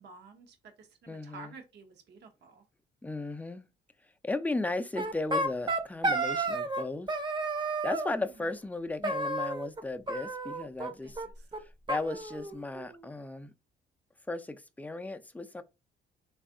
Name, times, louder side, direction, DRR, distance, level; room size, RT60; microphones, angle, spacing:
voice 1, 0.0-2.6 11.0-11.3, right 4 dB, 60° right, 0.8 m, -51 dB
voice 2, 1.1-1.5 3.0-3.6 4.2-7.1 7.8-11.2 11.6-13.5 14.3-15.6, left 2 dB, 10° left, 0.4 m, -36 dB
sound 1, 4.9-6.8 7.1-8.1 9.0-9.8 10.1-10.9 11.2-11.3 11.5-11.6 11.9-12.9, right 2 dB, 25° right, 0.7 m, -31 dB
3.3 x 2.4 x 3.7 m
cardioid pair, 90°, 20 cm